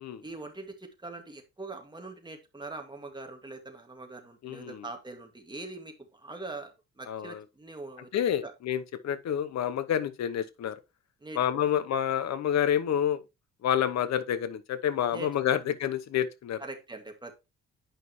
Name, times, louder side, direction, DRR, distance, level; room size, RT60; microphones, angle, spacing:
voice 1, 0.2-8.1 8.4-8.5 11.2-11.7 15.1-15.6 16.6-17.5, right 2 dB, 15° right, 2.1 m, -43 dB
voice 2, 4.4-4.8 7.1-7.4 8.1-10.8 11.4-13.2 13.6-16.6, left 9 dB, 65° left, 0.9 m, -28 dB
9.1 x 5.5 x 3.1 m
cardioid pair, 90°, 30 cm